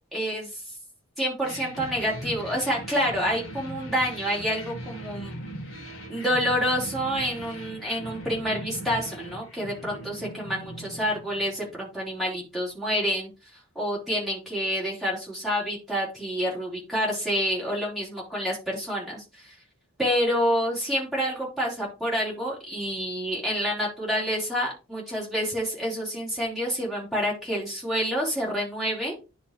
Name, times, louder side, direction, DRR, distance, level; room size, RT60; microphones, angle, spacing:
voice 1, 0.1-0.6 1.2-5.4 6.1-13.3 13.8-19.5 20.0-29.2, equal, ahead, -5 dB, 3.6 m, -28 dB
sound 1, 1.4-12.0, equal, 60° left, 1.6 m, -40 dB
10.0 x 3.4 x 4.4 m, 0.30 s
head